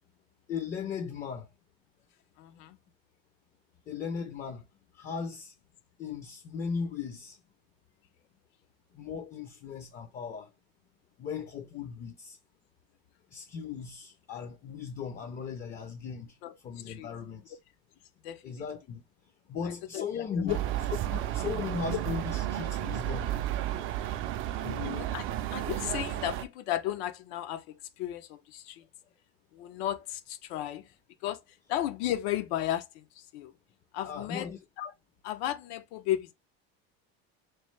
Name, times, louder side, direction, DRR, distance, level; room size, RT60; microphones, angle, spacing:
voice 1, 0.5-1.5 3.9-4.6 4.9-5.5 6.0-7.4 8.9-10.5 11.2-12.4 13.3-16.4 16.6-17.6 18.4-19.0 19.5-20.6 21.1-23.3 24.6-25.1 34.0-34.6, left 6 dB, 25° left, 0.4 m, -37 dB
voice 2, 2.4-2.8 16.4-16.6 16.9-17.1 18.2-18.6 19.6-20.1 20.3-20.6 25.0-25.2 25.5-27.7 28.0-28.9 29.5-30.9 31.2-31.4 31.7-33.5 33.9-34.5 34.8-34.9 35.2-36.3, left 12 dB, 90° left, 0.8 m, -34 dB
sound 1, 20.5-26.4, right 12 dB, 45° right, 0.4 m, -32 dB
3.5 x 3.1 x 3.1 m
cardioid pair, 150°, 31 cm